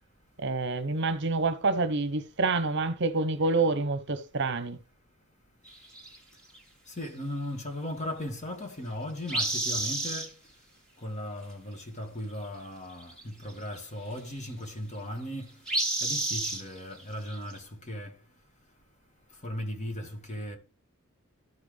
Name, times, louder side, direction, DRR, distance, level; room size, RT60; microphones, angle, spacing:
voice 1, 0.4-4.8, right 3 dB, 55° right, 0.9 m, -27 dB
sound 1, 5.7-6.2 6.5-6.6 9.3-10.3 12.6-12.7 13.0-13.2 13.5-13.8 15.7-17.6, right 2 dB, 5° left, 2.2 m, -30 dB
voice 2, 6.9-10.4 11.0-15.5 16.0-18.2 19.4-20.6, left 1 dB, 35° left, 1.9 m, -37 dB
13.5 x 5.9 x 3.4 m
head